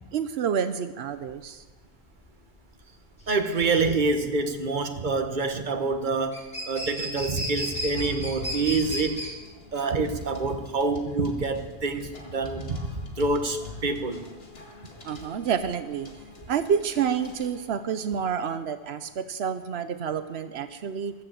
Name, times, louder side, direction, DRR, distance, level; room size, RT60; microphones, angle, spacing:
voice 1, 0.1-1.6 15.1-16.1 16.5-21.1, right 7 dB, 90° right, 10 dB, 1.0 m, -28 dB
sound 1, 1.2-17.5, equal, 5° left, 5.7 m, -37 dB
voice 2, 3.3-9.2 9.7-12.8 13.2-14.2, right 3 dB, 50° right, 7 dB, 1.3 m, -26 dB
sound 2, 7.6-17.9, left 3 dB, 75° left, 2.3 m, -44 dB
14.5 x 12.0 x 7.5 m, 1.2 s
omnidirectional pair, 1.0 m